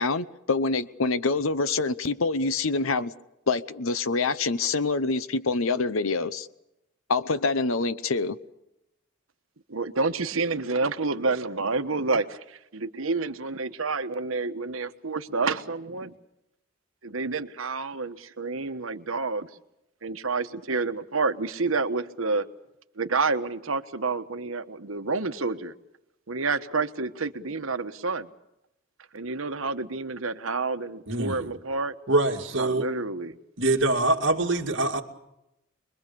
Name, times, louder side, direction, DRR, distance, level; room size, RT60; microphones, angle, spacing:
voice 1, 0.0-3.1 3.5-6.5 7.1-8.4, left 3 dB, 90° left, 0.9 m, -26 dB
voice 2, 9.7-12.4 12.7-16.1 17.0-19.5 20.0-22.4 23.0-25.7 26.3-28.3 29.1-31.9 32.6-33.3, right 3 dB, 90° right, 1.3 m, -29 dB
voice 3, 31.1-31.5 32.1-32.9 33.6-35.0, right 2 dB, 65° right, 2.5 m, -24 dB
25.0 x 22.0 x 6.9 m
head